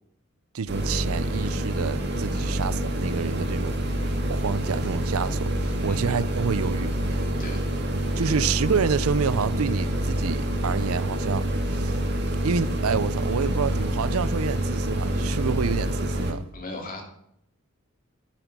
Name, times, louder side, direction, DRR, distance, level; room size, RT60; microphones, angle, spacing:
voice 1, 0.5-3.8 4.3-7.2 8.2-12.0 12.4-16.4, right 6 dB, 90° right, 0.5 m, -28 dB
sound 1, 0.7-16.3, right 1 dB, 55° right, 2.2 m, -27 dB
voice 2, 16.5-17.0, left 2 dB, 40° left, 2.7 m, -38 dB
11.5 x 8.0 x 6.1 m
head